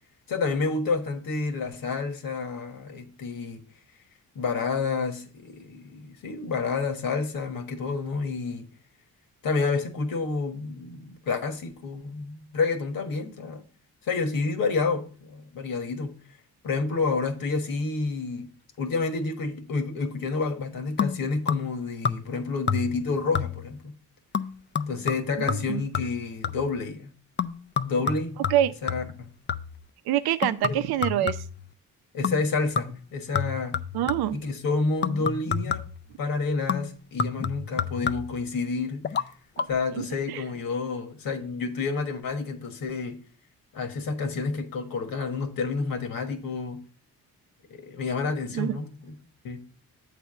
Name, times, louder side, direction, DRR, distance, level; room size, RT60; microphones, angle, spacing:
voice 1, 0.3-3.6 4.3-8.7 9.4-13.6 14.1-16.1 16.6-18.5 18.8-23.9 24.9-27.1 27.8-28.4 28.8-29.3 30.7-30.8 32.1-33.8 34.3-35.8 36.2-39.0 39.7-43.2 43.7-46.8 47.7-49.2 49.4-49.6, left 4 dB, 65° left, 1.4 m, -29 dB
sound 1, 21.0-21.8 22.0-22.4 22.7-23.1 23.3-23.8 24.3-26.8 27.4-29.8 30.4-31.7 32.2-32.5 32.7-34.4 35.0-36.0 36.7-38.5 39.0-39.3 39.6-39.7, left 6 dB, 30° left, 0.4 m, -30 dB
voice 2, 25.4-25.8 28.5-28.7 30.1-31.4 33.9-34.4 39.6-39.7 39.9-40.4 48.5-48.8, right 12 dB, 90° right, 0.6 m, -26 dB
8.1 x 3.4 x 6.5 m
cardioid pair, 85°, 36 cm